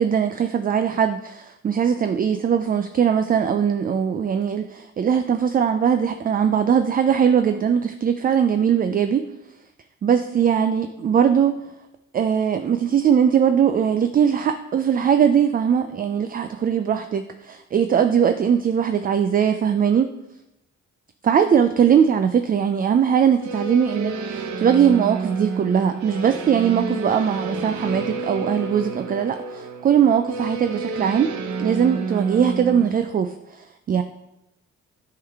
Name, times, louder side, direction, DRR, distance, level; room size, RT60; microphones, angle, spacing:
voice 1, 0.0-9.3 10.0-11.7 12.1-20.1 21.2-31.3 31.6-34.0, right 8 dB, 30° right, 9 dB, 0.4 m, -20 dB
sound 1, 23.4-32.9, right 4 dB, 75° right, 0.7 m, -30 dB
8.4 x 3.8 x 3.5 m, 0.89 s
cardioid pair, 90°, 30 cm